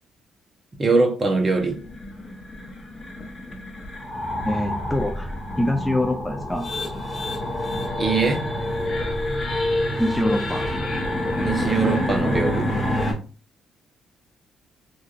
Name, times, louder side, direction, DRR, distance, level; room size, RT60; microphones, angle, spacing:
voice 1, 0.8-1.8 8.0-8.4 11.4-12.7, right 4 dB, 30° right, 0.8 m, -22 dB
sound 1, 1.6-13.1, left 1 dB, 30° left, 0.9 m, -27 dB
voice 2, 4.4-6.7 10.0-10.7, left 1 dB, 10° left, 0.3 m, -25 dB
3.0 x 2.4 x 2.4 m
cardioid pair, 90°, 0 cm